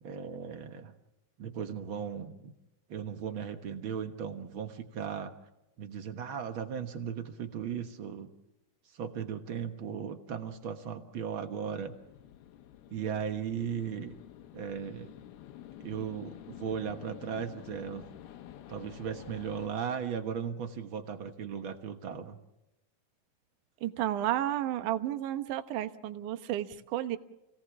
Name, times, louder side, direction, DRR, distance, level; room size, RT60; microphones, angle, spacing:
voice 1, 0.0-0.9 1.4-2.5 2.9-5.3 5.8-8.3 8.8-12.0 12.9-14.2 14.5-15.1 15.8-18.1 18.7-22.4, right 7 dB, 90° right, 7 dB, 1.1 m, -37 dB
sound 1, 11.8-19.7, left 12 dB, 90° left, 3.0 m, -49 dB
voice 2, 23.8-27.2, right 12 dB, 65° right, 9 dB, 2.4 m, -32 dB
29.5 x 18.0 x 7.1 m, 0.92 s
omnidirectional pair, 4.3 m